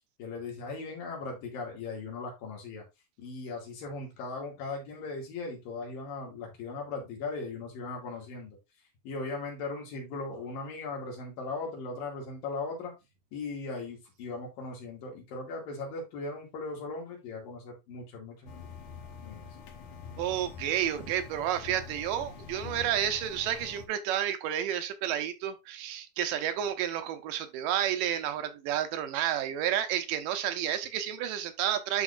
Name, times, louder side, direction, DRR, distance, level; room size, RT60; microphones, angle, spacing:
voice 1, 0.2-2.9 3.2-8.6 9.0-12.9 13.3-18.6 19.2-19.5, left 3 dB, 90° left, 4.1 m, -38 dB
sound 1, 18.5-23.9, left 6 dB, 70° left, 2.3 m, -45 dB
voice 2, 20.2-32.0, right 10 dB, 80° right, 2.4 m, -31 dB
11.0 x 4.1 x 2.5 m
omnidirectional pair, 3.9 m